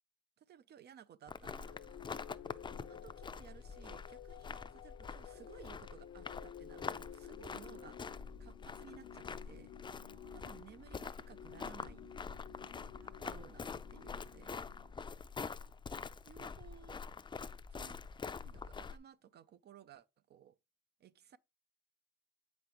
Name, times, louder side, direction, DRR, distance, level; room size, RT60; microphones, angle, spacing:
voice 1, 0.4-2.0 2.9-8.0 8.4-9.7 10.3-12.1 13.2-14.6 16.2-17.0 17.7-18.0 18.3-20.6 21.0-21.4, right 10 dB, 55° right, 0.5 m, -58 dB
sound 1, 1.3-19.0, left 5 dB, 25° left, 0.4 m, -46 dB
sound 2, 1.6-15.4, left 9 dB, 75° left, 0.7 m, -54 dB
voice 2, 2.4-3.2 7.6-7.8 10.0-10.8 13.0-13.6 14.3-15.3, right 6 dB, 85° right, 1.7 m, -69 dB
7.5 x 5.2 x 2.9 m
cardioid pair, 90°, 20 cm